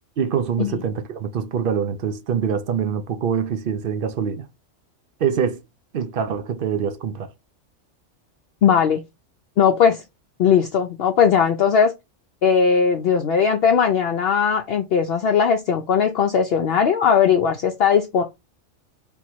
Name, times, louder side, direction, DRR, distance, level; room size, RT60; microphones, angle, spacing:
voice 1, 0.2-4.5 5.2-5.6 5.9-7.3, right 7 dB, 60° right, 0.6 m, -24 dB
voice 2, 8.6-9.0 9.6-10.0 10.4-11.9 12.4-18.2, left 7 dB, 60° left, 0.7 m, -18 dB
3.5 x 2.9 x 4.5 m
omnidirectional pair, 1.2 m